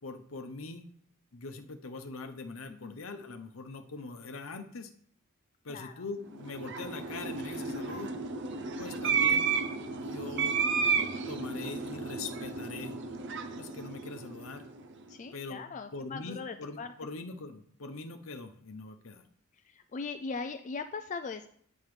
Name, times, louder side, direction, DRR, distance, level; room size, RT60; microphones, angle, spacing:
voice 1, 0.0-0.9 1.3-4.9 5.6-8.1 8.8-9.5 9.9-10.6 11.3-13.0 13.6-14.6 15.3-15.6 15.9-19.3, left 3 dB, 75° left, 7 dB, 0.8 m, -42 dB
voice 2, 2.7-3.0 5.7-6.1 8.8-8.9 15.1-16.9 19.5-21.5, left 4 dB, 35° left, 8 dB, 0.3 m, -40 dB
sound 1, 6.3-14.9, right 5 dB, 55° right, 0.6 m, -32 dB
8.7 x 7.1 x 3.2 m, 0.62 s
head